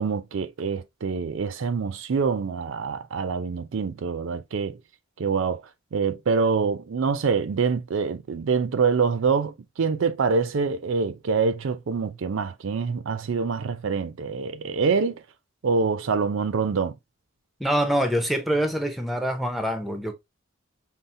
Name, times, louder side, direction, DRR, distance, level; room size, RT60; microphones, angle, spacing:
voice 1, 0.0-4.8 5.2-15.2 15.6-16.9, right 5 dB, 65° right, 0.4 m, -25 dB
voice 2, 17.6-20.2, equal, ahead, 0.5 m, -25 dB
5.5 x 2.0 x 2.5 m
head